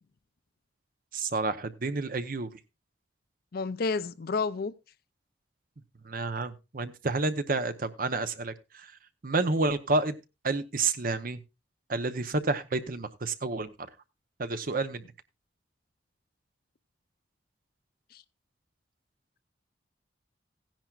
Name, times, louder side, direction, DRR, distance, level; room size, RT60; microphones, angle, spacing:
voice 1, 1.1-2.5 6.0-8.9 9.2-10.1 10.4-11.4 11.9-13.7 14.4-15.0, right 3 dB, 50° right, 0.8 m, -29 dB
voice 2, 3.5-4.7 18.1-18.2, left 4 dB, 55° left, 0.5 m, -30 dB
16.0 x 10.5 x 2.4 m
head